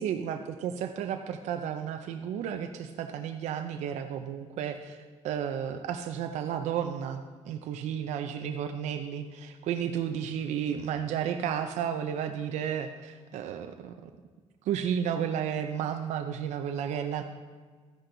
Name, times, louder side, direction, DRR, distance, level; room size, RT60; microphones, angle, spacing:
voice 1, 0.0-5.0 5.2-14.1 14.7-17.2, right 8 dB, 75° right, 6 dB, 0.6 m, -32 dB
13.5 x 10.0 x 3.9 m, 1.5 s
cardioid pair, 155°, 12 cm